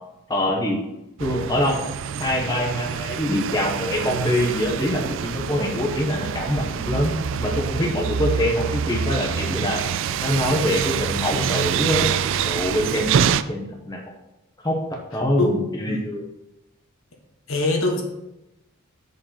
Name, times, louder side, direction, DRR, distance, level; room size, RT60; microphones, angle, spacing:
voice 1, 0.3-0.8 1.2-1.8 2.2-7.1 7.4-9.8 10.2-12.1 12.5-13.1 13.5-14.0 14.6-14.8 15.1-16.2, left 1 dB, 20° left, 0 dB, 1.0 m, -24 dB
sound 1, 1.2-13.4, right 7 dB, 60° right, 0.3 m, -26 dB
voice 2, 6.9-7.4 15.4-15.5 15.9-16.0 17.5-18.0, left 2 dB, 70° left, 2 dB, 1.5 m, -24 dB
6.5 x 5.3 x 5.7 m, 0.92 s
head